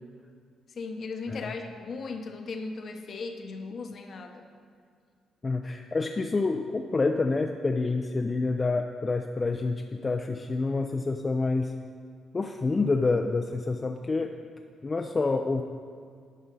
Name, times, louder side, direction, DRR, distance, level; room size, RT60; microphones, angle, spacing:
voice 1, 0.7-4.4, left 4 dB, 55° left, 5 dB, 0.9 m, -37 dB
voice 2, 5.4-11.7 12.3-14.3 14.8-15.6, left 3 dB, 30° left, 4 dB, 0.4 m, -27 dB
10.5 x 5.4 x 5.4 m, 2.2 s
cardioid pair, 90°, 0 cm